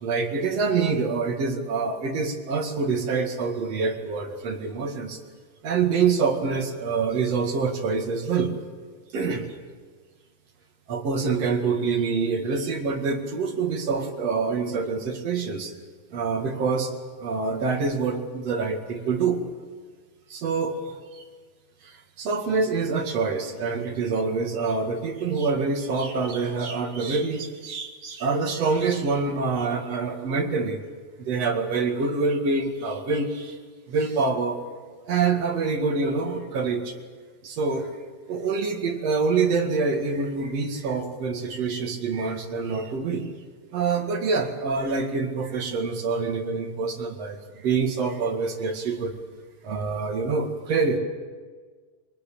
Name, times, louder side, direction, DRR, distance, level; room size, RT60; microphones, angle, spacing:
voice 1, 0.0-5.2 5.6-8.5 9.1-9.4 10.9-15.7 16.1-16.9 17.2-19.4 20.3-21.2 21.8-30.8 31.2-33.6 33.9-34.6 35.0-36.9 37.4-37.9 38.3-43.3 43.7-49.1 49.6-51.0, right 4 dB, 60° right, 3 dB, 3.1 m, -26 dB
22.5 x 20.0 x 8.8 m, 1.5 s
omnidirectional pair, 3.4 m